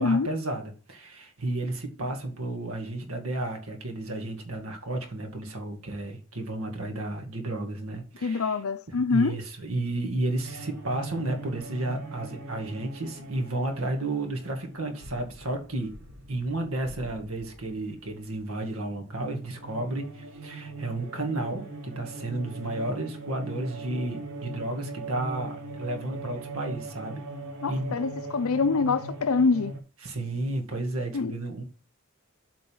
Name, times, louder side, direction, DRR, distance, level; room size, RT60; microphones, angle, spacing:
voice 1, 0.0-8.6 9.1-16.0 16.3-27.2 27.7-28.0 30.0-31.6, right 2 dB, 85° right, 2.1 m, -32 dB
voice 2, 8.2-9.4 27.6-29.7 31.1-31.3, left 4 dB, 80° left, 0.6 m, -25 dB
sound 1, 10.4-18.6 18.9-29.8, right 2 dB, 60° right, 2.8 m, -40 dB
7.9 x 4.1 x 5.6 m
head